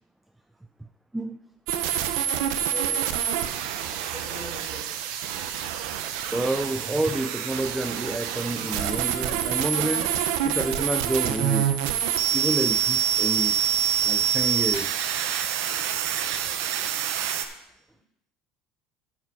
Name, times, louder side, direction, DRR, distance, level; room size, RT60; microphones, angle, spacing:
sound 1, 1.7-17.5, right 10 dB, 80° right, 0.9 m, -26 dB
voice 1, 2.7-3.1 4.1-5.0, left 3 dB, 20° left, -4 dB, 3.6 m, -41 dB
voice 2, 6.3-10.1 10.4-11.7 12.3-13.6 14.0-15.0, right 1 dB, 5° right, 8 dB, 0.3 m, -29 dB
11.5 x 5.1 x 5.4 m, 0.81 s
cardioid pair, 160°, 2 cm